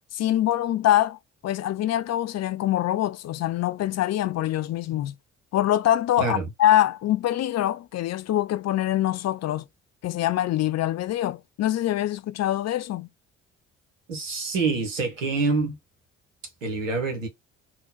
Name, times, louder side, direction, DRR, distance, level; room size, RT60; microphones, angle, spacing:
voice 1, 0.1-5.2 5.5-9.6 10.0-13.1, left 13 dB, 45° left, 0.6 m, -24 dB
voice 2, 6.2-6.5 14.1-15.8 16.6-17.3, right 3 dB, 85° right, 1.1 m, -26 dB
3.7 x 2.3 x 3.9 m
figure-of-eight pair, 45°, 38 cm